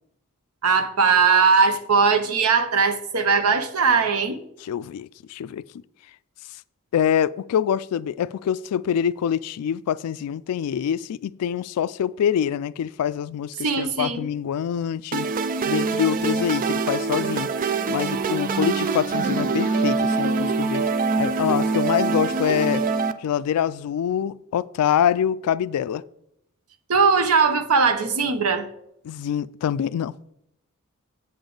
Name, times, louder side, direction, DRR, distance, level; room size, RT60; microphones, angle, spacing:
voice 1, 0.6-4.4 13.6-14.3 26.9-28.7, right 5 dB, 75° right, 0.8 m, -19 dB
voice 2, 4.6-5.6 6.9-15.3 15.7-17.5 17.9-20.9 21.2-22.8 23.2-26.0 29.0-30.3, left 9 dB, 90° left, 0.3 m, -25 dB
sound 1, 15.1-23.1, right 4 dB, 40° right, 0.4 m, -24 dB
7.9 x 6.9 x 3.8 m
head